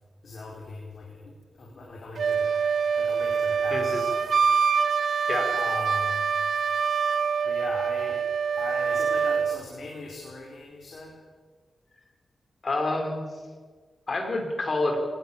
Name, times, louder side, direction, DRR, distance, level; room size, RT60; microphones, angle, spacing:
voice 1, 0.2-1.3 1.6-2.5 3.0-4.3 5.5-6.2 7.4-8.2 8.6-11.2, left 3 dB, 60° left, -2 dB, 4.8 m, -40 dB
Wind instrument woodwind instrument, 2.2-9.6, right 6 dB, 70° right, 1.2 m, -25 dB
voice 2, 3.7-4.0 5.3-5.5 12.6-13.2 14.1-15.0, left 2 dB, 45° left, 3 dB, 5.3 m, -27 dB
23.5 x 19.0 x 7.5 m, 1.5 s
wide cardioid pair, 110°, 0 cm